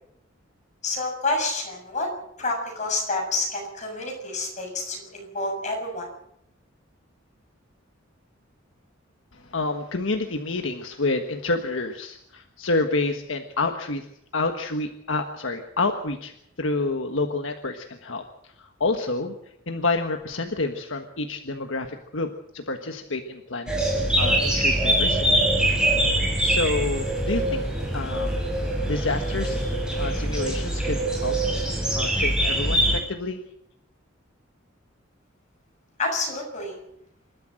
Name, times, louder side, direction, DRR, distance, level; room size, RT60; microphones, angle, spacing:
voice 1, 0.8-2.1 2.4-6.1 36.0-36.8, left 2 dB, 35° left, 1 dB, 7.3 m, -28 dB
voice 2, 9.3-14.1 14.3-16.3 16.6-19.3 19.7-25.4 26.0-27.7 27.9-28.4 28.8-29.6 30.0-31.4 31.7-33.4, left 3 dB, 70° left, 5 dB, 1.5 m, -28 dB
sound 1, 23.7-33.0, right 1 dB, 5° right, 6.1 m, -23 dB
27.0 x 13.0 x 7.8 m, 0.76 s
head